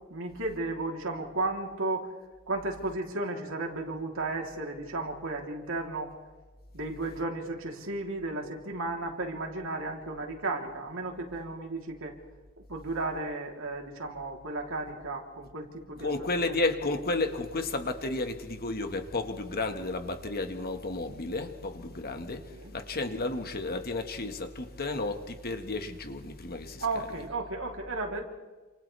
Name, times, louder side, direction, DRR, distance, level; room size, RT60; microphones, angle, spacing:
voice 1, 0.1-2.1 2.5-6.2 6.7-12.1 12.7-16.1 22.5-22.7 26.8-28.2, right 2 dB, 65° right, 3.5 m, -34 dB
voice 2, 16.0-27.1, left 2 dB, 45° left, 1.8 m, -32 dB
28.5 x 28.0 x 3.5 m
head